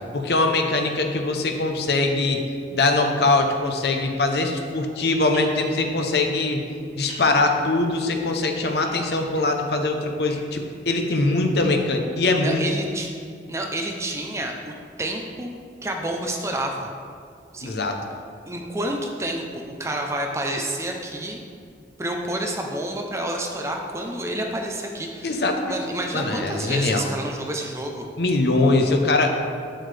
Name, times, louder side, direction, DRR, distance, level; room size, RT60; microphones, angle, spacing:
voice 1, 0.1-2.4 2.7-6.6 6.9-12.6 17.6-18.0 25.2-25.8 26.1-27.1 28.2-29.4, left 2 dB, 65° left, 4 dB, 0.8 m, -22 dB
sound 1, 3.8-4.0 5.3-5.6 7.1-7.3 8.8-9.4 10.0-10.3 11.2-11.6, right 1 dB, 35° right, 2.2 m, -42 dB
voice 2, 12.4-13.1 13.5-14.7 15.0-15.5 15.8-16.9 17.5-17.7 18.5-21.4 22.0-25.4 25.7-28.1, right 1 dB, 15° right, 1 dB, 0.6 m, -29 dB
8.6 x 7.6 x 3.3 m, 2.3 s
head